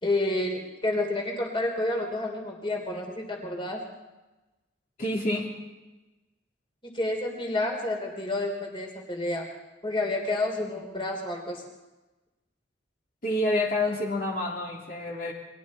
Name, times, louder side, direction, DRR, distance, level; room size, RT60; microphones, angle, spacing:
voice 1, 0.0-3.8 6.8-9.5 9.8-11.6, left 2 dB, 25° left, 2 dB, 3.4 m, -29 dB
voice 2, 5.0-5.5 13.2-15.3, left 1 dB, 45° left, -2 dB, 3.2 m, -28 dB
29.5 x 23.5 x 4.3 m, 1.1 s
head